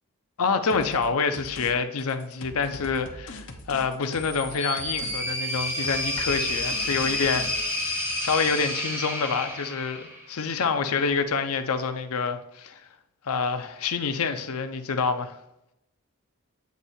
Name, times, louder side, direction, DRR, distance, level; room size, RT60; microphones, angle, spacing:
voice 1, 0.4-7.5 8.2-12.8 13.3-15.4, left 5 dB, 75° left, 0.6 m, -27 dB
sound 1, 0.7-1.0 1.3-1.7 2.0-4.5 4.8-5.1 5.4-7.5, left 2 dB, 60° left, 0.9 m, -42 dB
sound 2, 4.1-10.4, left 1 dB, 10° right, 1.2 m, -30 dB
8.1 x 2.7 x 4.3 m
head